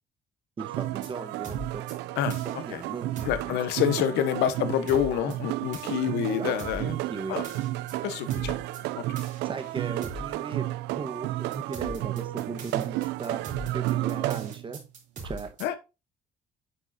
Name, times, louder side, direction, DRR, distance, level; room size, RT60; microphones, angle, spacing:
voice 1, 0.6-1.9 2.4-3.6 6.3-6.5 6.8-7.4 9.4-13.4 13.7-14.8 15.2-15.5, right 5 dB, 30° right, 1.4 m, -37 dB
sound 1, 0.6-14.8 15.2-15.3, right 16 dB, 90° right, 0.5 m, -32 dB
sound 2, 0.8-1.1 1.4-1.9 2.3-2.5 3.2-3.5 4.9-5.3 5.7-6.0 6.6-6.9 7.4-7.9 8.3-8.8 9.2-9.4 10.0-10.3 11.5-15.6, right 1 dB, 50° right, 4.1 m, -40 dB
voice 2, 3.2-6.9 7.3-7.4 8.0-8.6 9.1-9.2 15.6-15.7, left 10 dB, 90° left, 1.1 m, -27 dB
9.3 x 6.3 x 2.8 m
cardioid pair, 110°, 17 cm